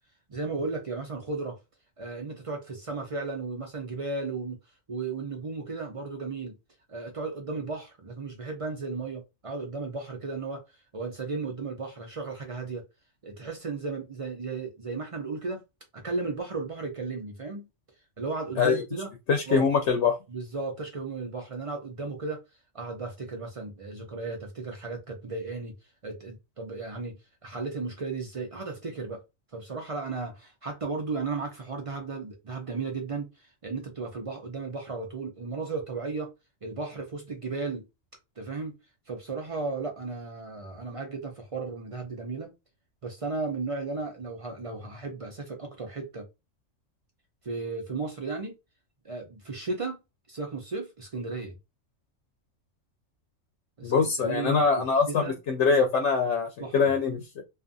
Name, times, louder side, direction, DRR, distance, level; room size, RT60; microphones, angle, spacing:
voice 1, 0.3-1.6 2.0-4.6 4.9-6.5 6.9-10.6 10.9-12.8 13.2-15.6 15.9-17.6 18.2-19.1 19.5-19.7 20.3-22.4 22.7-25.7 26.0-27.2 27.4-29.2 29.5-36.3 36.6-37.8 38.4-38.7 39.1-42.5 43.0-46.3 47.4-48.5 49.0-50.0 50.3-51.5 53.8-55.4 56.6-56.8, right 3 dB, 50° right, 0.4 m, -35 dB
voice 2, 19.3-20.1 53.8-57.4, left 5 dB, 75° left, 0.9 m, -24 dB
2.5 x 2.4 x 2.5 m
omnidirectional pair, 1.3 m